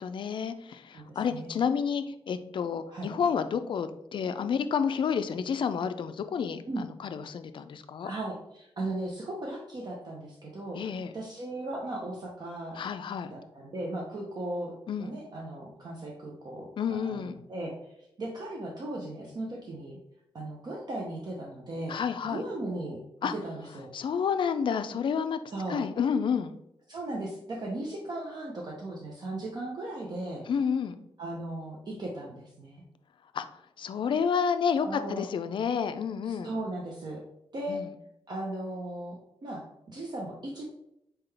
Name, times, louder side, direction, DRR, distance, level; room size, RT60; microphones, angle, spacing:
voice 1, 0.0-8.1 10.7-11.1 12.8-13.3 14.9-15.1 16.8-17.4 21.9-22.4 23.2-23.3 23.9-25.4 25.7-26.5 30.5-31.0 33.3-33.5 33.8-36.5 37.7-37.9, left 6 dB, 50° left, 10 dB, 0.4 m, -30 dB
voice 2, 0.9-1.5 2.9-3.1 6.7-6.8 8.0-10.9 11.1-12.8 13.3-20.0 20.3-22.0 22.2-23.0 23.3-23.9 25.5-25.8 26.9-30.4 31.2-32.8 34.8-35.2 36.3-37.2 37.5-37.8 38.3-40.6, right 1 dB, 40° right, -2 dB, 0.7 m, -37 dB
4.3 x 3.7 x 3.3 m, 0.79 s
wide cardioid pair, 165°, 10 cm